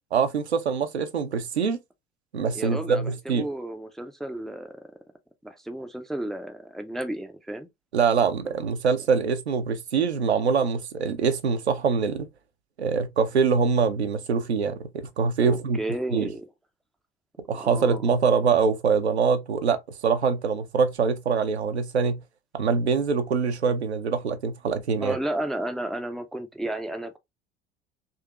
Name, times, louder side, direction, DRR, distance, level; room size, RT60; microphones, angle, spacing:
voice 1, 0.1-1.8 2.3-3.5 7.9-12.3 12.8-15.8 16.1-16.3 17.5-22.2 22.5-25.2, right 5 dB, 85° right, 0.5 m, -24 dB
voice 2, 2.5-4.9 5.4-7.7 15.4-16.5 17.5-18.0 25.0-27.2, right 1 dB, ahead, 0.4 m, -33 dB
3.8 x 2.8 x 2.3 m
figure-of-eight pair, 65°, 32 cm